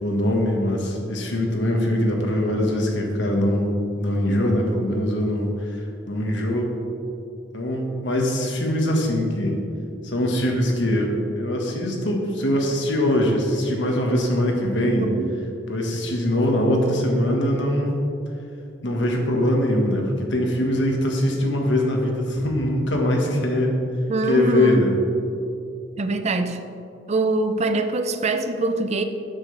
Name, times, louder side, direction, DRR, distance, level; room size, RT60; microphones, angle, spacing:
voice 1, 0.0-3.7 4.0-6.7 7.5-9.6 10.0-15.1 15.7-18.0 18.8-23.7 24.3-25.0, left 1 dB, 75° left, 1 dB, 1.6 m, -22 dB
voice 2, 14.8-15.3 24.1-24.9 26.0-26.6 27.1-29.0, right 2 dB, 35° right, 9 dB, 0.5 m, -23 dB
12.5 x 7.7 x 3.4 m, 2.7 s
head